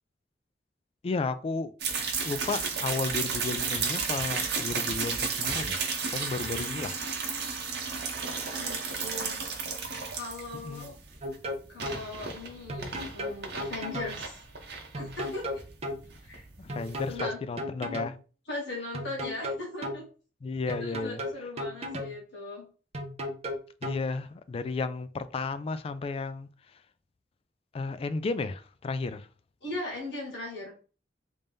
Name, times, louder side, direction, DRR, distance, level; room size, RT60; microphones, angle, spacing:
voice 1, 1.0-1.7 2.2-5.8 6.1-6.9 10.6-10.9 16.6-18.2 20.4-21.2 23.8-26.5 27.7-29.3, left 4 dB, 35° left, 0.3 m, -33 dB
sound 1, 1.8-17.2, right 5 dB, 65° right, 0.8 m, -33 dB
voice 2, 6.4-7.5 8.6-9.4 10.1-10.9 11.7-14.4 15.0-15.4 16.2-16.4 17.1-17.4 18.5-20.0 20.7-22.7 29.6-30.7, left 2 dB, 80° left, 1.6 m, -39 dB
sound 2, 11.2-12.0 12.7-14.2 14.9-16.0 16.7-18.2 18.9-20.0 20.7-22.2 22.9-24.0, left 1 dB, 40° right, 0.5 m, -35 dB
3.3 x 2.6 x 3.5 m
head